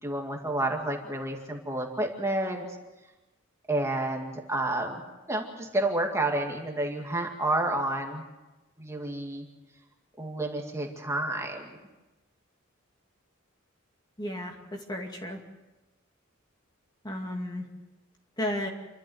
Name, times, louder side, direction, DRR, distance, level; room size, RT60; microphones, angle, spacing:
voice 1, 0.0-2.7 3.7-5.0 5.3-8.2 8.8-9.4 10.2-11.8, right 1 dB, 15° right, 2 dB, 2.2 m, -30 dB
voice 2, 14.2-15.4 17.0-17.7 18.4-18.7, left 1 dB, 20° left, 2 dB, 2.3 m, -33 dB
28.0 x 12.5 x 8.0 m, 1.1 s
head